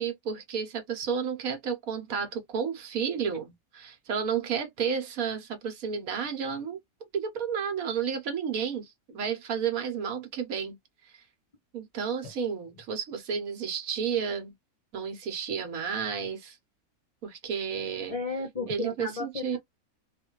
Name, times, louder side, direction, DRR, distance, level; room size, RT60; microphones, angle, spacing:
voice 1, 0.0-6.8 7.1-10.8 11.1-11.2 11.7-14.5 14.9-16.6 17.2-18.2 18.7-19.6, right 7 dB, 75° right, 1.4 m, -32 dB
voice 2, 18.1-19.6, left 3 dB, 40° left, 0.5 m, -33 dB
3.3 x 2.5 x 3.0 m
omnidirectional pair, 1.5 m